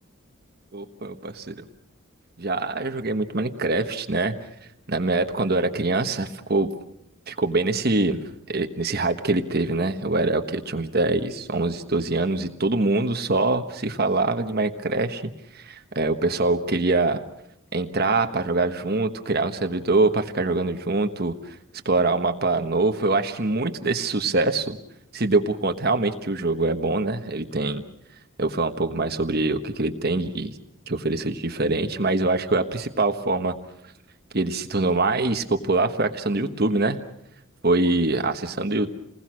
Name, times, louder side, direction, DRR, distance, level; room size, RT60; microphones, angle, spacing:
voice 1, 0.7-1.6 2.4-4.3 4.9-6.7 7.3-8.2 8.5-15.2 15.5-17.2 17.7-21.5 21.8-24.8 25.1-27.8 28.4-30.5 30.9-33.5 34.3-37.0 37.6-38.9, right 2 dB, 50° right, 6 dB, 1.3 m, -24 dB
29.0 x 20.5 x 6.3 m, 0.77 s
head